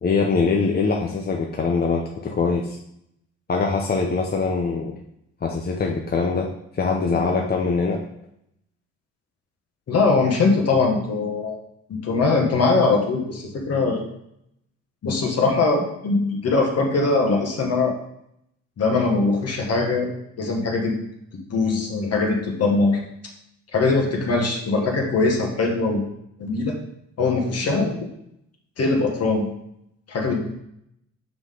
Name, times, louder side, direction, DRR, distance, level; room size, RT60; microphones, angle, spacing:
voice 1, 0.0-2.8 3.5-4.9 5.4-6.5 6.7-8.0, left 4 dB, 30° left, 1 dB, 0.8 m, -23 dB
voice 2, 7.0-7.3 9.9-11.6 12.0-14.1 15.0-18.0 18.8-20.1 20.4-21.0 21.5-23.0 23.7-26.0 26.4-26.7 27.2-28.1 28.8-29.4 30.1-30.5, left 3 dB, 55° left, 1 dB, 1.8 m, -21 dB
5.9 x 5.8 x 3.9 m, 0.76 s
cardioid pair, 90°, 30 cm